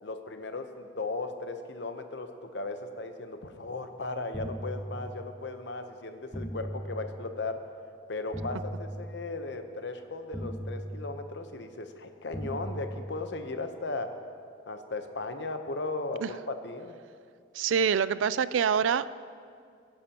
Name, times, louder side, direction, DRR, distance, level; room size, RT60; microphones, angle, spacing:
voice 1, 0.0-7.6 8.1-14.2 14.7-17.0, left 3 dB, 65° left, 7 dB, 0.9 m, -36 dB
sound 1, 4.3-5.5 6.3-7.5 8.3-9.5 10.3-11.5 12.3-13.5, equal, ahead, 1.0 m, -39 dB
voice 2, 17.5-19.1, right 7 dB, 85° right, 16 dB, 0.4 m, -25 dB
21.0 x 10.5 x 2.9 m, 2.2 s
head